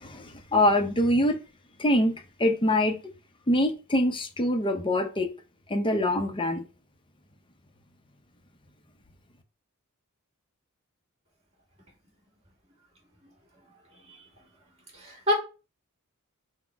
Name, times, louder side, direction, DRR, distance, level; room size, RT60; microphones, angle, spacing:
voice 1, 0.0-1.4 1.8-2.1 2.4-3.0 3.5-5.3 5.7-6.6, left 1 dB, 25° left, 0.6 m, -24 dB
voice 2, 14.9-15.3, left 1 dB, 30° right, 2.0 m, -28 dB
4.1 x 2.1 x 4.5 m
head